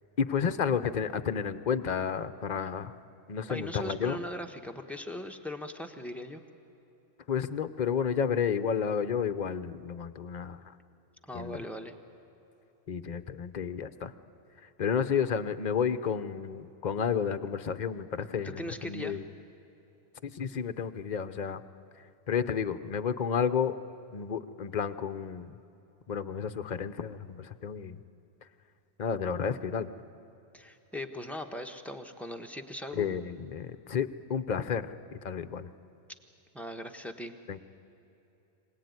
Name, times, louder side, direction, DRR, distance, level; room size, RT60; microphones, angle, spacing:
voice 1, 0.2-2.9 3.3-4.2 7.3-10.6 11.3-11.6 12.9-14.1 14.8-19.2 20.2-21.6 22.3-23.7 24.1-25.5 26.1-28.0 29.0-29.9 32.9-34.9 35.2-35.7 37.5-37.6, left 7 dB, 45° left, 12 dB, 0.8 m, -31 dB
voice 2, 3.5-6.4 11.3-11.9 18.4-19.2 30.5-33.1 36.5-37.3, left 1 dB, ahead, 5 dB, 1.2 m, -39 dB
25.5 x 18.0 x 9.6 m, 2.9 s
omnidirectional pair, 1.2 m